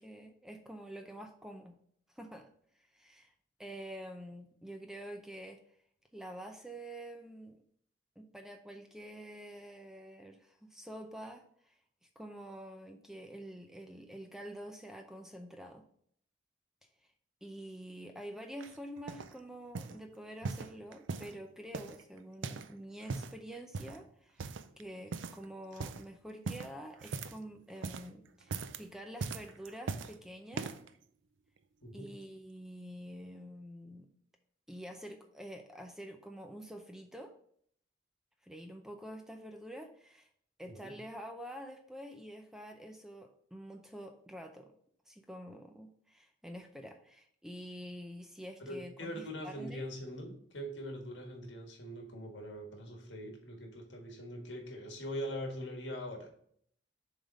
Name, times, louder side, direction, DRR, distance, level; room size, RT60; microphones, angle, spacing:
voice 1, 0.0-1.8 2.1-2.5 2.7-3.3 3.6-5.6 6.1-7.6 8.2-11.8 12.2-15.8 17.4-30.8 31.9-34.1 34.7-37.3 38.4-40.3 40.6-44.7 45.1-49.8, equal, 5° right, 5 dB, 0.5 m, -47 dB
sound 1, 18.6-19.3 19.7-20.0 20.4-21.4 21.7-22.7 23.0-23.4 23.7-24.0 24.4-24.8 25.1-25.4 25.7-26.0 26.4-27.5 27.7-28.1 28.4-28.8 29.2-30.1 30.5-30.9 31.6-31.7, right 4 dB, 90° right, 0.5 m, -40 dB
voice 2, 48.6-56.4, equal, 75° left, 2 dB, 1.7 m, -42 dB
7.1 x 3.6 x 5.3 m, 0.64 s
head